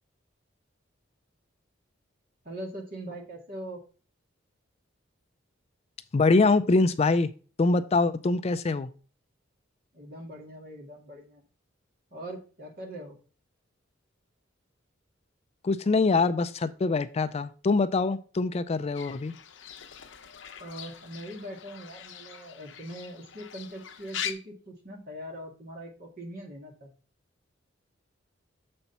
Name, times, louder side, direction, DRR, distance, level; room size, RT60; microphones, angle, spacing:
voice 1, 2.4-3.8 9.9-11.4 12.1-13.1 20.6-26.9, right 1 dB, 50° right, 0 dB, 2.2 m, -41 dB
voice 2, 6.1-7.3 7.6-8.9 15.6-19.3, left 3 dB, 35° left, 12 dB, 0.4 m, -24 dB
Fowl / Bird, 18.9-24.3, left 9 dB, 70° left, 0.8 m, -41 dB
7.0 x 4.3 x 5.3 m, 0.38 s
head